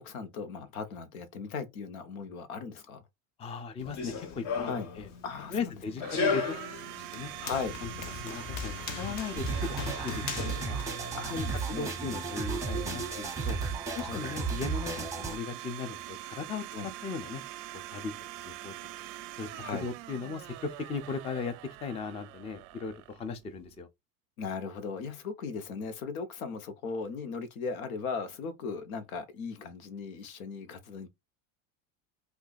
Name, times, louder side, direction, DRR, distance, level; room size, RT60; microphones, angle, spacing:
voice 1, 0.0-3.0 4.6-4.9 5.2-5.8 7.4-7.7 8.9-9.2 11.1-11.9 13.4-13.5 14.0-14.3 16.7-16.9 19.6-19.9 24.4-31.1, left 5 dB, 90° left, 1.0 m, -38 dB
voice 2, 3.4-4.7 5.0-5.1 5.5-6.8 7.1-7.3 7.8-7.9 8.2-10.1 10.6-10.8 11.3-13.6 14.0-16.6 17.0-17.4 17.7-18.1 18.5-18.7 19.4-21.5 21.8-23.9, left 5 dB, 15° left, 0.4 m, -37 dB
Run, 3.8-11.5, left 5 dB, 45° left, 0.8 m, -36 dB
Domestic sounds home sounds, 5.0-23.8, right 15 dB, 50° right, 0.5 m, -43 dB
sound 1, 9.4-15.4, right 4 dB, 10° right, 0.7 m, -34 dB
2.7 x 2.4 x 3.9 m
supercardioid pair, 120°, 41 cm